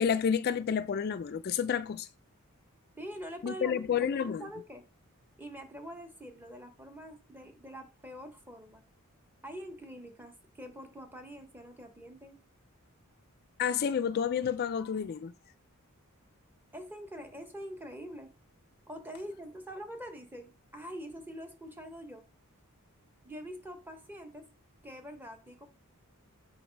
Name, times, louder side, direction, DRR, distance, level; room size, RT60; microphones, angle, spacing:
voice 1, 0.0-2.1 3.4-4.4 13.6-15.3, left 7 dB, 45° left, 0.3 m, -30 dB
voice 2, 3.0-4.8 5.4-8.8 9.4-12.4 16.7-18.3 18.9-22.2 23.2-24.5 24.8-25.7, equal, 10° right, 1.0 m, -45 dB
7.8 x 4.0 x 5.1 m
head